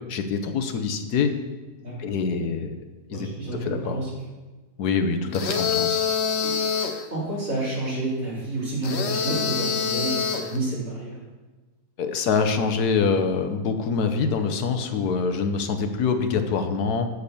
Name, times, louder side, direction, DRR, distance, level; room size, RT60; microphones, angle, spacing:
voice 1, 0.1-1.3 2.0-2.8 3.1-3.3 3.6-4.0 4.8-6.1 12.0-17.1, left 5 dB, 80° left, 7 dB, 1.4 m, -25 dB
voice 2, 3.1-4.1 6.4-6.5 7.1-11.2, right 2 dB, 55° right, -7 dB, 4.2 m, -29 dB
sound 1, 5.3-7.0 8.8-10.6, left 6 dB, 50° left, 1.0 m, -25 dB
8.4 x 6.5 x 6.8 m, 1.2 s
omnidirectional pair, 1.6 m